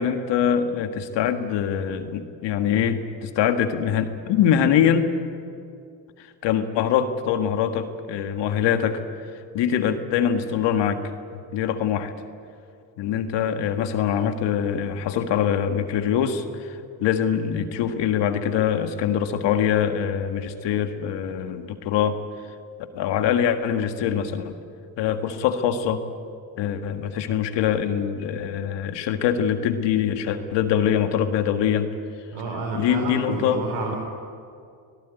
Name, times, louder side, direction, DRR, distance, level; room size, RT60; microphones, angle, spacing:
voice 1, 0.0-5.1 6.4-9.0 9.5-11.0 11.5-12.1 13.0-22.2 22.9-24.5 25.0-26.0 26.6-31.9 32.7-33.6, left 8 dB, 80° left, 7 dB, 1.9 m, -23 dB
voice 2, 32.3-34.0, right 3 dB, 80° right, 1 dB, 4.0 m, -29 dB
24.5 x 18.0 x 9.3 m, 2.4 s
cardioid pair, 90°, 42 cm